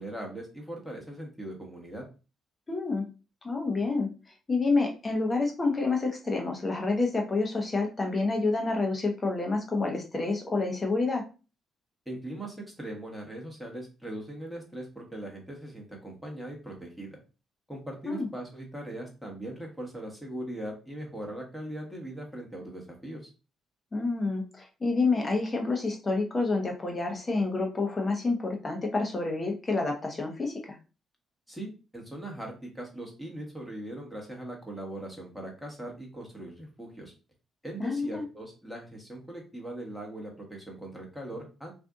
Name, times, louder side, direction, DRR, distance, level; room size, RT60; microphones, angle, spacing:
voice 1, 0.0-2.0 12.1-17.2 17.7-23.3 31.5-37.1 37.6-41.7, right 1 dB, ahead, -1 dB, 1.2 m, -40 dB
voice 2, 2.7-3.1 3.4-4.1 4.5-11.2 18.1-18.3 23.9-30.8 37.8-38.2, left 3 dB, 30° left, 2 dB, 0.8 m, -28 dB
2.6 x 2.5 x 3.5 m, 0.33 s
cardioid pair, 90°, 0 cm